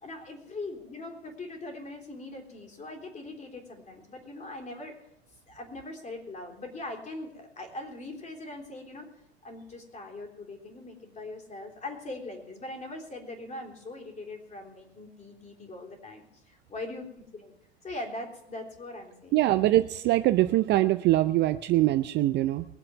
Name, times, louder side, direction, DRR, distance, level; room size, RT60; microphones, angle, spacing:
voice 1, 0.0-5.1 5.5-9.1 9.4-17.5 17.8-19.5, left 2 dB, 20° left, 3 dB, 3.5 m, -41 dB
voice 2, 19.3-22.7, right 15 dB, 35° right, 11 dB, 0.5 m, -23 dB
21.5 x 7.6 x 6.0 m, 0.77 s
figure-of-eight pair, 85°, 32 cm